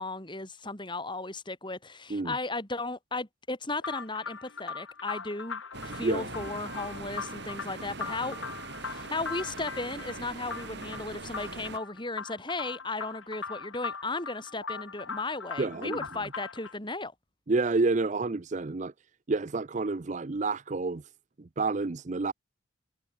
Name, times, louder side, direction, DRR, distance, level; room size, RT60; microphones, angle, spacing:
voice 1, 0.0-8.5 8.8-17.1, left 3 dB, 25° left, 4.7 m, -35 dB
sound 1, 3.8-16.8, left 5 dB, 85° left, 3.0 m, -40 dB
sound 2, 5.7-11.8, right 3 dB, 55° right, 2.0 m, -41 dB
voice 2, 15.6-16.0 17.5-18.9 19.3-21.0 21.4-22.3, right 3 dB, 35° right, 0.5 m, -29 dB
head